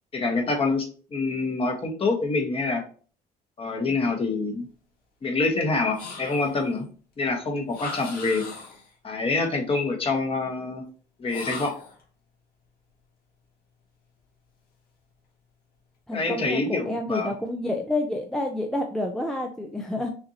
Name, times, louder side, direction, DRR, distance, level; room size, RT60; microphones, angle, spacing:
voice 1, 0.1-2.8 3.6-4.6 5.2-6.9 7.2-8.5 9.0-10.8 11.2-11.7 16.1-17.3, left 3 dB, 35° left, 2 dB, 1.2 m, -26 dB
sound 1, 5.9-6.7 7.7-8.9 11.3-12.0, left 3 dB, 60° left, 1.9 m, -38 dB
voice 2, 16.1-20.1, left 1 dB, 5° left, 2 dB, 0.5 m, -29 dB
5.8 x 2.6 x 2.8 m, 0.41 s
cardioid pair, 110°, 17 cm